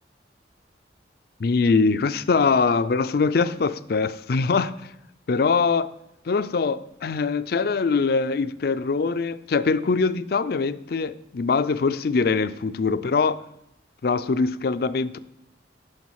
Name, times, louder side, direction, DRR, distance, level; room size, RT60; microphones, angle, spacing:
voice 1, 1.4-4.9 5.3-5.9 6.3-13.4 14.0-15.2, left 4 dB, 55° left, 0.4 m, -23 dB
9.5 x 6.3 x 4.7 m
head